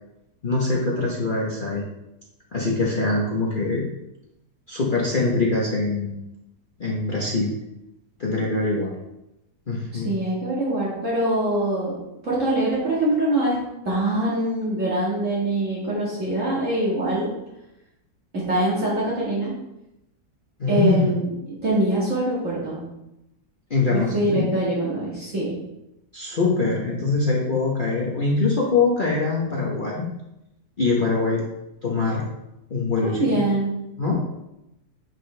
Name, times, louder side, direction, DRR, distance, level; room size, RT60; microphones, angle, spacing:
voice 1, 0.4-1.8 2.5-3.8 4.7-6.2 6.8-7.5 8.2-8.9 9.7-10.1 20.6-21.1 23.7-24.4 26.1-30.1 30.8-31.4 31.8-32.2 32.7-33.4 34.0-34.2, left 3 dB, 35° left, -4 dB, 1.0 m, -23 dB
voice 2, 9.9-11.9 12.2-13.6 13.9-17.3 18.5-19.5 20.7-21.3 21.6-22.8 23.9-25.5 33.0-33.7, right 1 dB, 55° right, -7 dB, 2.2 m, -23 dB
8.5 x 6.2 x 3.3 m, 0.90 s
omnidirectional pair, 1.6 m